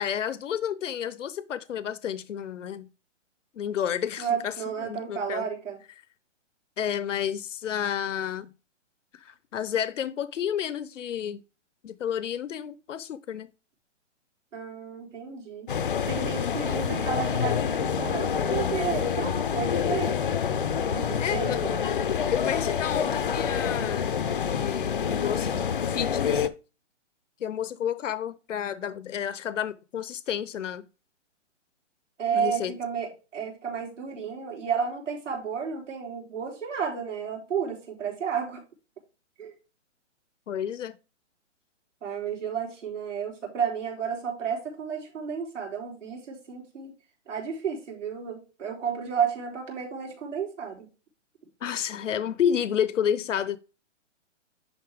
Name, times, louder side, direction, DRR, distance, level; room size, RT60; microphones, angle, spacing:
voice 1, 0.0-2.9 3.5-5.5 6.8-8.5 9.1-11.4 11.8-13.5 21.2-21.6 22.3-24.1 24.5-26.5 27.4-30.9 32.3-32.7 40.5-41.0 51.6-53.6, left 9 dB, 80° left, 0.8 m, -30 dB
voice 2, 4.2-5.8 14.5-15.7 16.1-20.2 20.9-21.7 32.2-38.6 39.4-39.5 42.0-46.9 47.3-50.9, right 7 dB, 75° right, 4.3 m, -32 dB
sound 1, 15.7-26.5, left 7 dB, 45° left, 0.5 m, -27 dB
10.5 x 4.2 x 3.5 m
hypercardioid pair, 175°, 37 cm